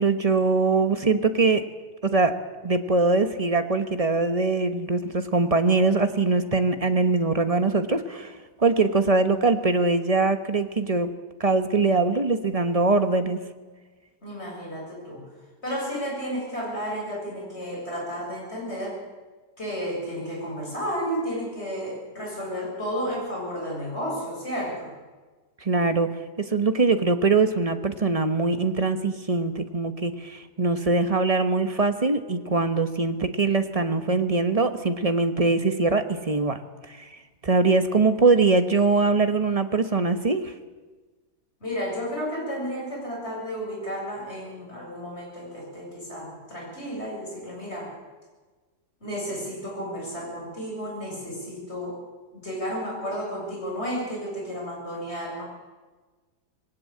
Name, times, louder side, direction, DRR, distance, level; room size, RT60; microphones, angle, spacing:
voice 1, 0.0-1.6 2.0-2.3 2.6-11.1 11.4-13.4 25.6-26.1 26.4-36.6 36.9-37.1 37.4-40.5, right 3 dB, 25° right, 9 dB, 1.1 m, -22 dB
voice 2, 14.2-15.2 15.6-19.0 19.6-24.9 41.6-47.9 49.0-52.0 52.3-55.4, equal, 40° left, -2 dB, 7.8 m, -32 dB
20.5 x 18.0 x 8.7 m, 1.3 s
omnidirectional pair, 1.8 m